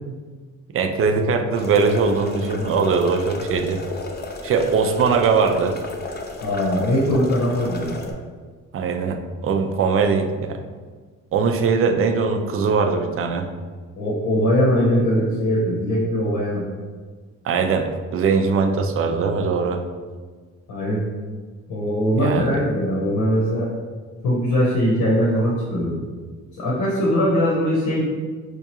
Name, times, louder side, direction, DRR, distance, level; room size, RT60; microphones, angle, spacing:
voice 1, 0.7-3.8 4.4-5.8 8.7-10.6 11.3-13.5 17.4-19.8 22.2-22.5, right 5 dB, 45° right, 4 dB, 0.5 m, -21 dB
sound 1, 1.5-8.1, left 3 dB, 35° left, 0.5 m, -34 dB
voice 2, 6.4-8.0 14.0-16.6 20.7-21.0 21.7-23.7 24.2-26.0 26.5-28.0, equal, 80° left, -5 dB, 0.9 m, -21 dB
4.5 x 2.4 x 2.9 m, 1.5 s
cardioid pair, 90°, 30 cm